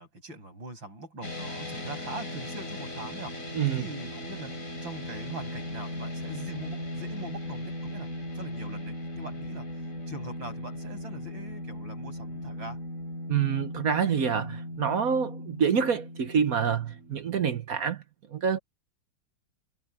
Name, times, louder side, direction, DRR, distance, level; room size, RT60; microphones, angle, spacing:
voice 1, 0.0-9.7 10.1-12.8, right 2 dB, 70° right, 8.8 m, -42 dB
sound 1, 1.2-17.6, left 1 dB, 40° left, 5.7 m, -38 dB
voice 2, 13.3-18.0 18.3-18.6, right 7 dB, 55° right, 1.3 m, -27 dB
omnidirectional pair, 2.2 m